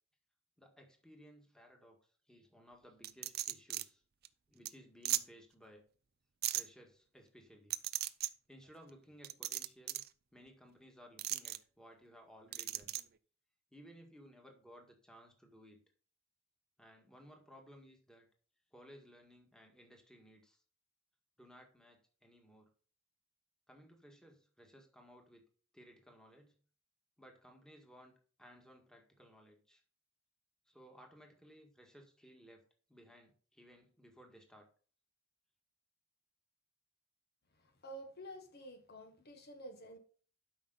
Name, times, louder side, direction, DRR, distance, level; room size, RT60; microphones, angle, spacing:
voice 1, 0.6-4.0 4.5-5.9 6.5-7.8 8.2-10.0 10.3-12.9 13.7-15.8 16.8-18.3 18.7-20.6 21.4-22.7 23.7-25.4 25.7-26.6 27.2-28.1 28.4-29.8 30.7-34.7, equal, 5° left, 2 dB, 1.8 m, -59 dB
sound 1, 3.0-3.8 4.2-4.3 4.6-4.7 5.0-5.2 6.4-6.6 7.7-8.3 9.2-10.1 11.2-11.6 12.5-13.0, right 14 dB, 50° right, 0.5 m, -36 dB
voice 2, 37.6-40.0, right 1 dB, 50° left, 6 dB, 1.4 m, -50 dB
12.0 x 5.8 x 4.0 m, 0.42 s
head